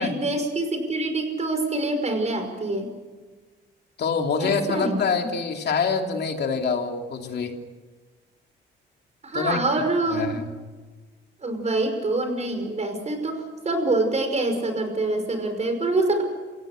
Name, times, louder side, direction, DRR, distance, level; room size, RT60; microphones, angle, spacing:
voice 1, 0.0-2.9 4.4-5.0 9.2-10.4 11.4-16.2, right 2 dB, 35° right, 6 dB, 5.6 m, -25 dB
voice 2, 4.0-7.6 9.3-9.6 10.1-10.5, left 5 dB, 55° left, 4 dB, 2.9 m, -25 dB
27.5 x 16.5 x 6.7 m, 1.3 s
cardioid pair, 90°, 20 cm